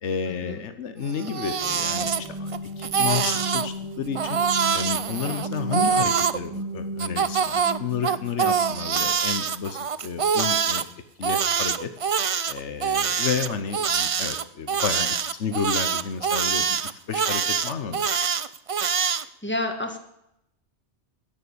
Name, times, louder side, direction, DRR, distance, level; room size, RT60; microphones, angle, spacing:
voice 1, 0.0-4.4 4.7-10.9 11.2-11.9 12.5-18.1, left 6 dB, 80° left, 9 dB, 1.4 m, -31 dB
Crying sobbing, 1.1-2.6 2.8-3.7 4.1-6.4 7.0-10.8 11.2-19.2, right 7 dB, 45° right, 0.4 m, -24 dB
sound 1, 1.5-9.2, right 1 dB, 25° right, 2.2 m, -35 dB
voice 2, 19.1-20.0, left 1 dB, 10° left, 5 dB, 1.7 m, -30 dB
10.5 x 9.7 x 8.7 m, 0.81 s
omnidirectional pair, 1.2 m